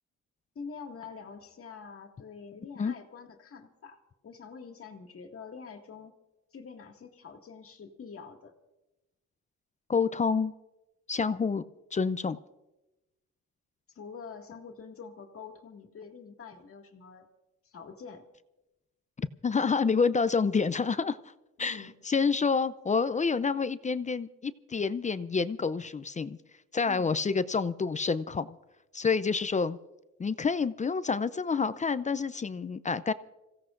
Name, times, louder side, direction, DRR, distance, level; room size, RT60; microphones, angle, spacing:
voice 1, 0.6-4.0 4.2-6.1 6.5-8.5 13.9-17.3 17.6-18.3 21.6-21.9 26.9-27.1, left 5 dB, 45° left, 4 dB, 2.0 m, -46 dB
voice 2, 9.9-10.5 11.1-11.6 11.9-12.4 19.2-21.3 21.6-26.4 26.7-28.6 28.9-29.8 30.2-33.1, left 5 dB, 25° left, 14 dB, 0.5 m, -28 dB
26.0 x 16.5 x 2.5 m, 1.0 s
cardioid pair, 90°, 30 cm